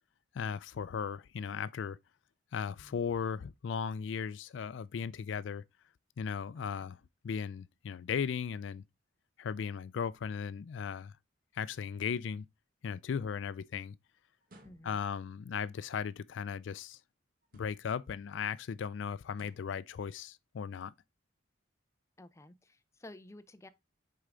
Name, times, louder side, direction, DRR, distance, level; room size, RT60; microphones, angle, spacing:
voice 1, 0.3-2.0 2.5-5.6 6.2-7.0 7.2-8.8 9.4-11.1 11.5-12.5 12.8-14.0 14.8-17.0 17.5-20.9, left 6 dB, 75° left, 0.4 m, -37 dB
voice 2, 6.5-6.9 14.6-15.1 22.2-23.7, left 1 dB, 15° left, 0.5 m, -53 dB
sound 1, 14.4-15.2 17.4-18.1 19.3-19.8, right 1 dB, 50° right, 1.4 m, -60 dB
6.4 x 4.6 x 3.8 m
head